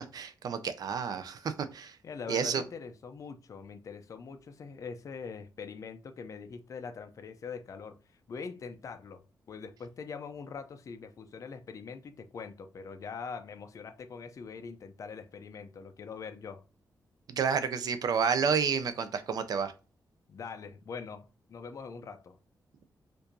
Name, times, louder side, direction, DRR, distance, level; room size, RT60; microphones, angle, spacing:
voice 1, 0.1-2.0 2.3-2.6 17.3-19.7, right 6 dB, 65° right, 0.5 m, -30 dB
voice 2, 2.0-8.0 8.3-16.6 20.3-22.4, left 5 dB, 50° left, 0.5 m, -43 dB
4.5 x 2.5 x 2.5 m
wide cardioid pair, 130°, 7 cm